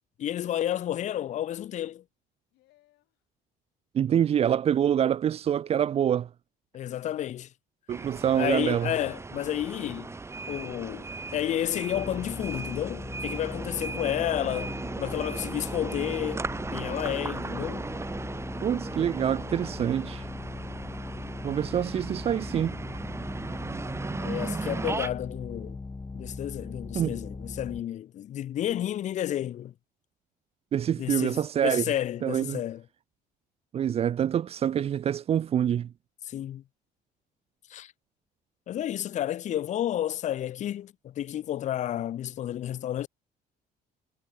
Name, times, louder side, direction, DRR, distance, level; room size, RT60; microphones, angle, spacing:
voice 1, 0.2-2.0 6.7-7.5 8.3-10.1 10.5-16.4 16.7-17.9 24.2-25.8 26.1-29.7 31.0-32.8 36.3-36.6 37.7-37.9 38.7-43.1, left 11 dB, 45° left, 0.5 m, -31 dB
sound 1, 1.0-1.6 2.5-3.1 4.0-4.5 5.4-6.0 6.9-7.3 8.1-8.4, left 18 dB, 85° left, 4.9 m, -63 dB
voice 2, 3.9-6.3 7.9-8.9 18.6-20.3 21.4-22.8 26.9-27.2 30.7-31.8 32.2-32.6 33.7-35.9, right 9 dB, 35° right, 0.4 m, -26 dB
sound 2, 7.9-25.1, right 3 dB, 15° right, 0.9 m, -37 dB
sound 3, 11.9-27.8, left 3 dB, 20° left, 2.8 m, -39 dB
cardioid pair, 110°, 17 cm